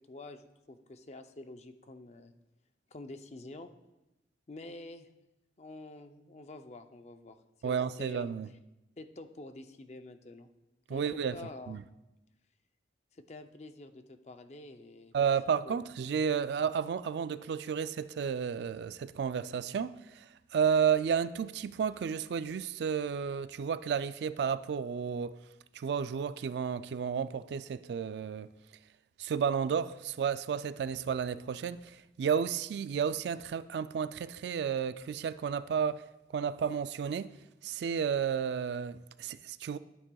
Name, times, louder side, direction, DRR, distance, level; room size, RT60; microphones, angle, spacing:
voice 1, 0.1-2.3 2.9-3.7 4.5-5.1 5.6-7.4 7.6-8.2 9.0-10.5 10.9-11.8 13.1-15.3 15.6-15.7, left 2 dB, 35° left, 0.5 m, -48 dB
voice 2, 7.6-8.5 10.9-11.4 11.7-11.8 15.1-25.4 25.7-28.5 29.2-36.0 36.3-37.3 37.6-39.8, right 7 dB, 70° right, 0.3 m, -32 dB
12.0 x 8.7 x 2.3 m
head